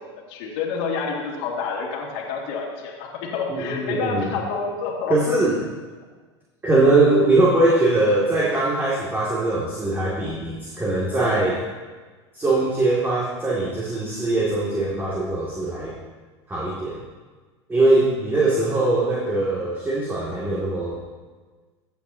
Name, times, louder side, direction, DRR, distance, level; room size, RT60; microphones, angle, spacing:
voice 1, 0.1-5.2 18.3-18.8, left 5 dB, 60° left, -3 dB, 2.3 m, -29 dB
voice 2, 3.5-4.3 5.1-5.6 6.6-11.6 12.3-15.9 16.5-17.0 17.7-21.0, right 2 dB, 15° right, -6 dB, 2.4 m, -21 dB
15.5 x 8.2 x 2.9 m, 1.4 s
hypercardioid pair, 100°, 14 cm